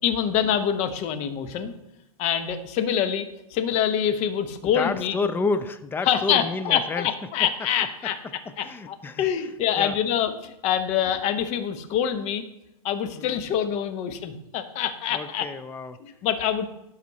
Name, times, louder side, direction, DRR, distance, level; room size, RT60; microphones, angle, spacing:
voice 1, 0.0-1.7 2.2-5.2 6.0-8.2 8.6-12.4 12.8-15.5 16.0-16.7, left 9 dB, 35° left, 9 dB, 0.9 m, -25 dB
voice 2, 4.6-7.1 7.4-7.5 8.0-8.1 8.5-9.3 9.8-10.0 13.1-13.4 15.1-16.0, left 3 dB, 10° left, 11 dB, 0.4 m, -30 dB
11.5 x 4.2 x 4.1 m, 0.89 s
hypercardioid pair, 120°, 19 cm